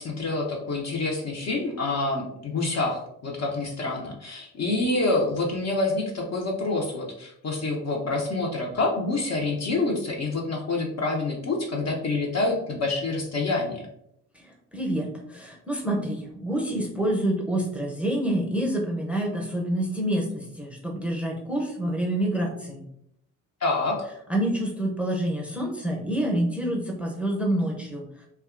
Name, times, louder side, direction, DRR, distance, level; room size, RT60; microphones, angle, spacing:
voice 1, 0.0-13.8 23.6-24.0, left 2 dB, 35° left, 0 dB, 0.6 m, -27 dB
voice 2, 14.7-22.8 24.3-28.0, right 1 dB, 5° right, -1 dB, 0.7 m, -27 dB
2.7 x 2.3 x 2.4 m, 0.75 s
hypercardioid pair, 50°, 44 cm